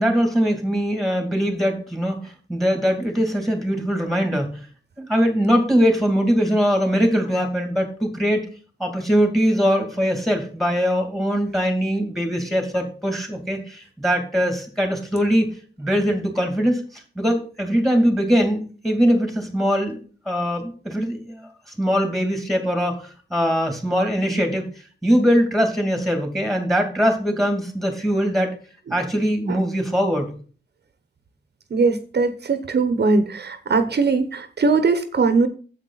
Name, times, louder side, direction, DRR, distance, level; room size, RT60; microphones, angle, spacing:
voice 1, 0.0-4.6 5.0-8.5 8.8-15.5 15.8-16.8 17.2-20.0 20.3-21.4 21.8-24.7 25.0-28.5 28.9-30.3, equal, ahead, 5 dB, 2.6 m, -21 dB
voice 2, 31.7-35.5, right 4 dB, 65° right, 10 dB, 0.9 m, -20 dB
9.0 x 7.8 x 4.0 m, 0.39 s
wide cardioid pair, 145°, 19 cm